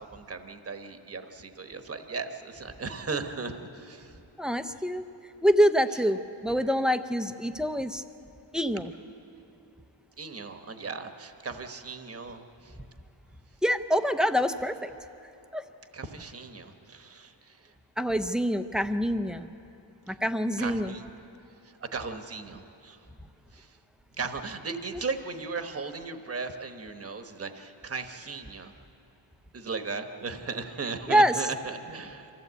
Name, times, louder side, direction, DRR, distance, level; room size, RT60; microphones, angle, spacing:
voice 1, 0.0-4.1 5.9-6.0 10.2-12.8 15.9-17.7 20.1-20.2 20.6-21.1 21.6-23.0 23.5-23.8 24.2-28.7 29.5-32.3, right 4 dB, 30° right, 7 dB, 1.1 m, -37 dB
voice 2, 4.4-5.0 5.4-8.0 8.5-8.9 13.6-14.9 15.5-15.6 18.0-19.5 20.1-20.9 24.9-25.0 31.1-31.3, equal, ahead, 7 dB, 0.6 m, -25 dB
25.0 x 15.0 x 8.2 m, 2.9 s
wide cardioid pair, 145°, 45 cm